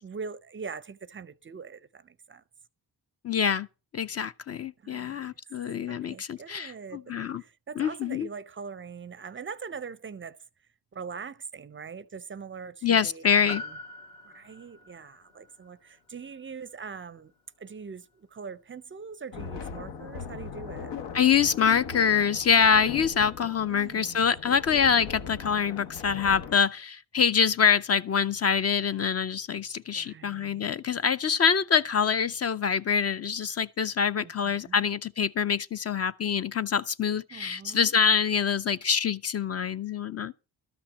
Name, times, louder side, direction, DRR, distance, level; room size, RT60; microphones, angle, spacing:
voice 1, 0.0-2.4 4.8-5.3 5.9-7.1 7.4-10.4 10.9-13.7 14.2-17.3 17.6-20.9 23.6-24.2 29.9-30.7 34.2-34.9 37.3-37.9, right 5 dB, 30° right, 0.5 m, -42 dB
voice 2, 3.2-3.7 3.9-7.4 7.8-8.3 12.8-13.6 21.1-40.3, left 7 dB, 40° left, 0.5 m, -25 dB
Piano, 13.5-18.1 18.3-18.4, left 2 dB, 60° left, 1.9 m, -45 dB
sound 1, 19.3-26.6, left 6 dB, 90° left, 1.5 m, -40 dB
13.0 x 5.9 x 7.0 m
cardioid pair, 120°, 41 cm